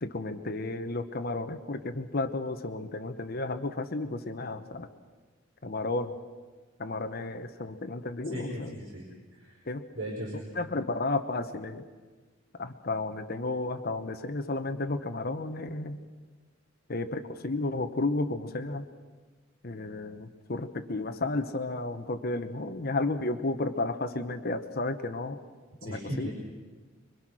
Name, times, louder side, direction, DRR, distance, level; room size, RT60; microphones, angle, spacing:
voice 1, 0.0-4.9 5.6-6.1 6.8-8.7 9.7-9.8 10.6-11.9 12.6-16.0 16.9-18.9 19.6-25.4 25.8-26.3, left 2 dB, 50° left, 8 dB, 1.1 m, -32 dB
voice 2, 8.2-9.7 9.9-10.5 25.8-26.3, equal, 85° right, -3 dB, 5.0 m, -38 dB
25.5 x 24.0 x 6.3 m, 1.4 s
head